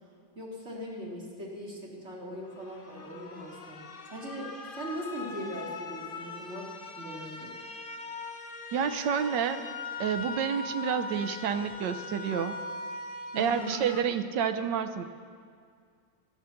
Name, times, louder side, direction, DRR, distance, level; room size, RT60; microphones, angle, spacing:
voice 1, 0.3-7.5 13.3-13.8, equal, 35° right, -3 dB, 2.8 m, -40 dB
sound 1, 2.4-14.0, left 3 dB, 40° left, 0.8 m, -41 dB
voice 2, 8.7-9.6 10.0-12.6 13.4-15.0, right 7 dB, 75° right, 9 dB, 1.3 m, -29 dB
13.5 x 11.0 x 7.0 m, 2.2 s
omnidirectional pair, 2.0 m